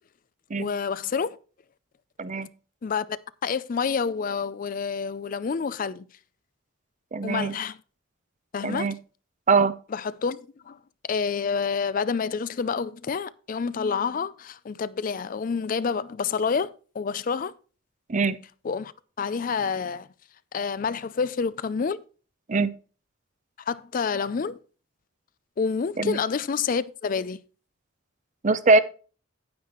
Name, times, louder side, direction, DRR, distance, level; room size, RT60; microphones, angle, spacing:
voice 1, 0.6-1.4 2.8-3.1 3.4-6.1 7.2-7.8 8.5-8.9 9.9-10.4 10.7-10.8 11.1-17.5 18.6-18.9 19.2-20.1 20.5-22.0 23.7-24.6 25.6-27.4, left 5 dB, 40° left, 0.4 m, -28 dB
voice 2, 7.1-7.5 8.6-8.9 9.5-9.7 18.1-18.4 22.5-22.7 26.0-26.2 28.4-28.8, right 3 dB, 35° right, 0.6 m, -22 dB
9.5 x 9.2 x 3.0 m
head